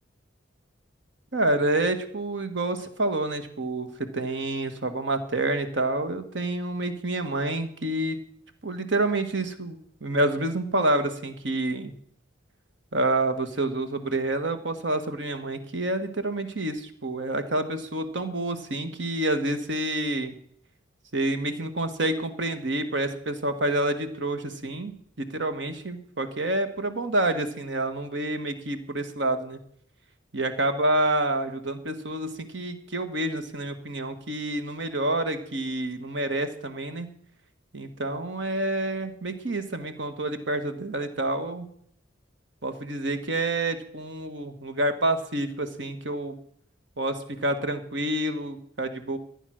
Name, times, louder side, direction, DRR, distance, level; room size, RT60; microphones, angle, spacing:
voice 1, 1.3-3.9 4.1-8.2 8.6-11.9 12.9-20.3 21.1-29.6 30.3-37.1 37.7-41.7 42.6-46.3 47.0-49.2, right 1 dB, 70° right, 9 dB, 1.5 m, -28 dB
14.5 x 10.0 x 6.4 m, 0.66 s
head